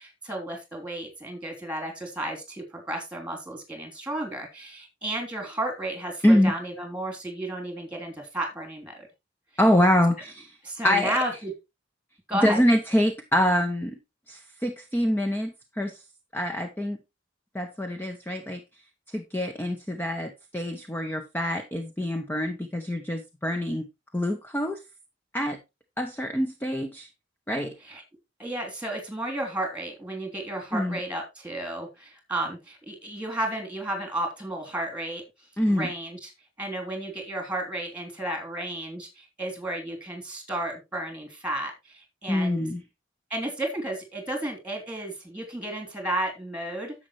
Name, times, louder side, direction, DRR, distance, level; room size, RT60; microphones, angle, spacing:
voice 1, 0.0-9.1 10.6-11.5 12.3-12.6 27.8-28.0 28.4-35.2 35.7-36.3 36.6-42.7 43.3-46.9, right 1 dB, 5° right, 3.2 m, -33 dB
voice 2, 9.6-10.6 10.8-11.2 12.4-14.0 14.3-16.0 16.3-17.0 17.5-18.6 19.1-23.9 24.1-24.8 25.3-25.6 26.0-27.1 27.5-27.7 30.7-31.0 35.6-35.9 42.3-42.8, equal, 10° left, 0.8 m, -25 dB
10.5 x 7.6 x 3.1 m
head